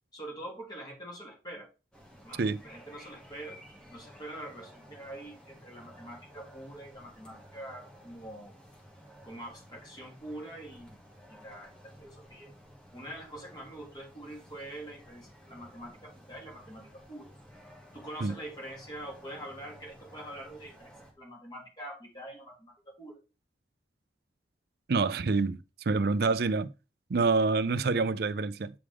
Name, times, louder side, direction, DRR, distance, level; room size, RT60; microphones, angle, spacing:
voice 1, 0.1-1.7 2.2-3.6 3.9-8.5 9.2-11.0 11.3-12.5 12.9-17.3 17.9-23.2, right 1 dB, 25° left, 3.0 m, -45 dB
sound 1, 1.9-21.1, equal, 5° left, 1.8 m, -54 dB
voice 2, 24.9-25.6 25.9-26.7 27.1-28.7, right 4 dB, 55° right, 0.5 m, -26 dB
8.8 x 4.9 x 3.5 m
head